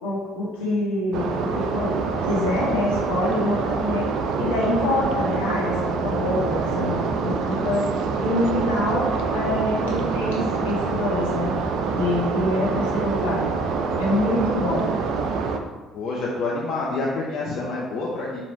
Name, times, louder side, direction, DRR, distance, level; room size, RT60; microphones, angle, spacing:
voice 1, 0.0-4.1 4.4-7.9 8.2-11.6 11.9-13.4 14.0-14.9, left 1 dB, 75° left, -5 dB, 1.1 m, -25 dB
sound 1, 1.1-15.6, right 5 dB, 60° right, 0.3 m, -26 dB
voice 2, 15.9-18.4, left 3 dB, 55° left, -5 dB, 0.6 m, -27 dB
4.6 x 2.8 x 2.7 m, 1.3 s
figure-of-eight pair, 50°, 0 cm